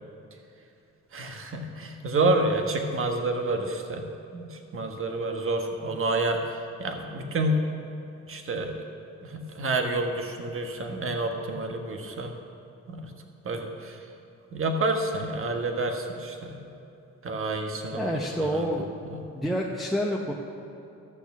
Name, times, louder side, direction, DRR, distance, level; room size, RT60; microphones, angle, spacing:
voice 1, 1.1-4.0 4.3-7.6 8.3-8.7 9.2-12.3 12.9-13.1 13.4-14.0 14.5-16.7 17.2-18.7 19.0-19.2, right 2 dB, 45° right, 4 dB, 1.4 m, -29 dB
voice 2, 17.9-18.9 19.3-20.3, equal, ahead, -3 dB, 0.9 m, -28 dB
13.0 x 7.0 x 6.1 m, 2.9 s
cardioid pair, 90°, 30 cm